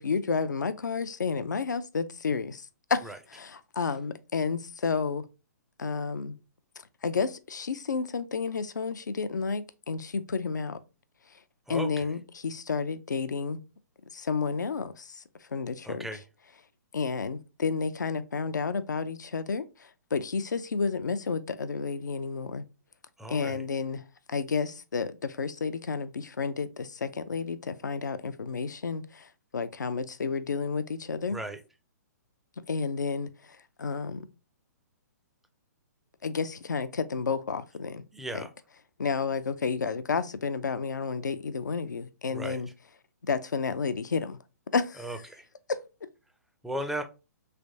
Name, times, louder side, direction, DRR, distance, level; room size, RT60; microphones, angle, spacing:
voice 1, 0.0-2.6 2.9-5.2 5.8-6.4 7.0-10.8 11.7-13.6 14.1-15.2 15.5-16.1 16.9-19.7 20.1-22.6 23.3-24.0 24.3-29.2 29.5-31.4 32.7-33.3 33.8-34.3 36.2-38.0 38.3-38.5 39.0-42.7 43.3-44.4 44.7-45.0 45.7-45.8, left 5 dB, 80° left, 0.4 m, -31 dB
voice 2, 11.7-12.1 15.8-16.2 23.2-23.6 31.3-31.6 38.1-38.5 42.3-42.6 45.0-45.4 46.6-47.0, right 1 dB, ahead, 0.4 m, -36 dB
3.3 x 3.0 x 2.6 m
figure-of-eight pair, 125°, 10 cm